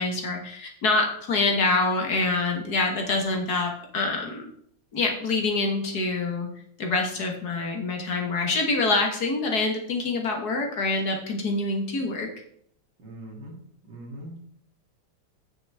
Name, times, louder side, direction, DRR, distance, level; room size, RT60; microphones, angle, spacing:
voice 1, 0.0-4.5 4.9-6.5 6.8-12.3, left 3 dB, 55° left, 2 dB, 1.8 m, -26 dB
voice 2, 13.0-13.5 13.9-14.4, right 1 dB, 60° right, -3 dB, 3.4 m, -41 dB
9.2 x 7.2 x 3.4 m, 0.67 s
omnidirectional pair, 2.2 m